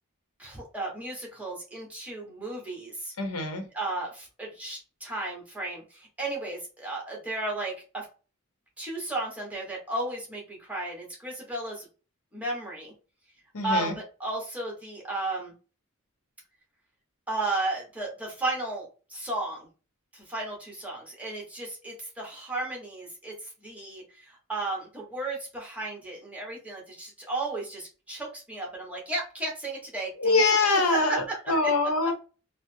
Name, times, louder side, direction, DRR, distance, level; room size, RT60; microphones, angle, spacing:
voice 1, 0.4-3.1 3.7-8.0 8.8-11.9 12.3-12.9 13.6-15.5 17.3-19.7 20.1-30.4 30.9-31.8, right 2 dB, 5° right, -2 dB, 1.1 m, -34 dB
voice 2, 3.2-3.6 13.5-13.9 30.2-32.1, left 3 dB, 85° left, 4 dB, 0.8 m, -24 dB
3.9 x 2.0 x 2.6 m, 0.34 s
head